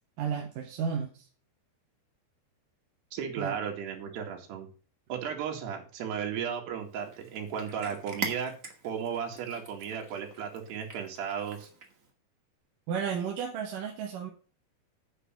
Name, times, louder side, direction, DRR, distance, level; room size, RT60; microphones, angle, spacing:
voice 1, 0.2-1.3 3.4-3.6 12.9-14.3, right 7 dB, 65° right, 1 dB, 2.7 m, -33 dB
voice 2, 3.1-4.7 5.1-8.5 8.8-11.7, right 7 dB, 80° right, 1 dB, 4.2 m, -35 dB
Cat, 6.9-12.1, right 4 dB, 30° right, 1.5 m, -43 dB
9.9 x 6.0 x 7.3 m, 0.37 s
omnidirectional pair, 4.7 m